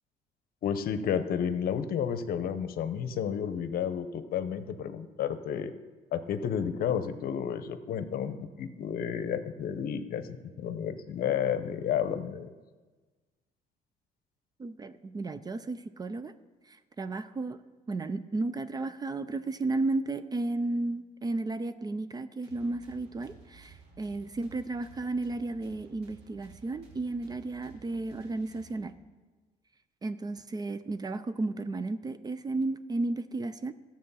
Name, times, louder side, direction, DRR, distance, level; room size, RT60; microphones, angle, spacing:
voice 1, 0.6-5.7 6.1-12.5, left 8 dB, 60° left, 11 dB, 0.8 m, -31 dB
voice 2, 14.6-16.3 16.7-17.6 17.9-29.0 30.0-33.7, right 2 dB, 25° right, 13 dB, 0.5 m, -33 dB
sound 1, 22.4-29.1, right 5 dB, 80° right, 2.3 m, -55 dB
13.0 x 7.4 x 5.6 m, 1.3 s
cardioid pair, 110°, 17 cm